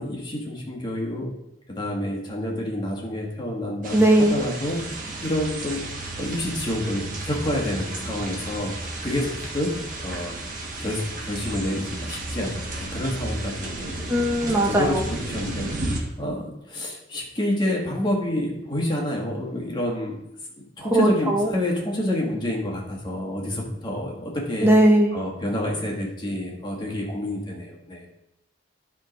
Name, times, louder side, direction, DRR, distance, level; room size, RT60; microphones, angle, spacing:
voice 1, 0.0-1.3 1.7-8.7 9.0-9.7 10.0-14.1 14.6-20.2 20.6-24.7 25.1-28.1, left 1 dB, 25° left, -2 dB, 1.7 m, -28 dB
sound 1, 3.8-16.0, right 2 dB, 45° right, 1.4 m, -33 dB
voice 2, 3.9-4.4 14.1-15.0 20.9-21.5 24.6-25.1, right 1 dB, 15° right, 0 dB, 1.1 m, -18 dB
10.5 x 3.8 x 5.2 m, 0.85 s
head